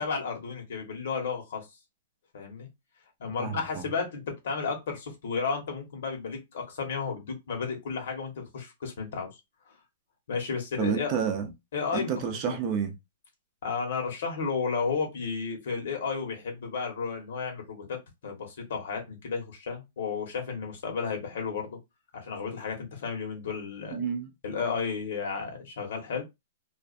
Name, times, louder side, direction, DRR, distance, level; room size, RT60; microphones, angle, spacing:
voice 1, 0.0-1.6 2.3-2.7 3.2-9.3 10.3-11.1 11.7-12.1 12.5-12.6 13.6-21.8 22.1-24.0 24.4-26.2, left 5 dB, 65° left, 1.1 m, -33 dB
voice 2, 3.4-3.8 10.8-11.5 11.9-12.9 23.9-24.3, right 7 dB, 30° right, 0.5 m, -30 dB
2.4 x 2.3 x 2.4 m
hypercardioid pair, 155°, 0 cm